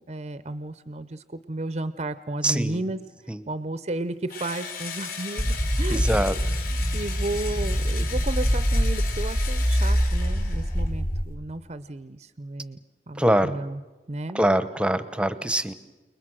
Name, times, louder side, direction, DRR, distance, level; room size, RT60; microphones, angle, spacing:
voice 1, 0.0-3.0 3.5-6.3 6.7-12.8 13.1-13.8 14.1-14.4, right 2 dB, 40° right, 13 dB, 0.7 m, -33 dB
voice 2, 2.4-2.8 3.3-3.4 5.9-6.6 13.2-13.5 14.3-15.7, right 1 dB, 5° right, 13 dB, 0.9 m, -24 dB
Engine / Drill, 4.3-10.9, left 6 dB, 55° left, 4.4 m, -37 dB
sound 1, 5.4-11.2, equal, 30° left, 1.4 m, -24 dB
29.5 x 20.5 x 6.3 m, 1.2 s
head